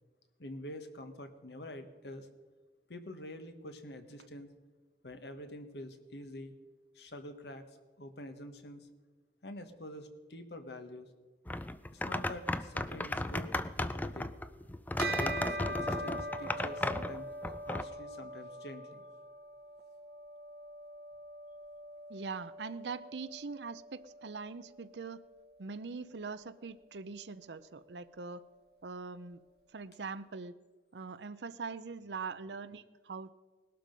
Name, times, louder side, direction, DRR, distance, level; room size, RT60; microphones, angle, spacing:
voice 1, 0.4-2.3 2.9-4.5 5.0-6.5 6.9-8.9 9.4-11.1 11.9-13.5 13.8-14.3 15.2-17.3 17.6-19.0, left 1 dB, 70° left, 8 dB, 1.4 m, -46 dB
sound 1, 11.5-17.8, left 1 dB, 10° left, 0.4 m, -35 dB
Bell, 15.0-24.7, right 1 dB, 60° right, 1.0 m, -42 dB
voice 2, 22.1-25.2 25.6-28.4 28.8-29.4 29.7-30.5 30.9-33.3, right 4 dB, 80° right, 13 dB, 0.6 m, -42 dB
19.0 x 12.0 x 5.3 m, 1.3 s
head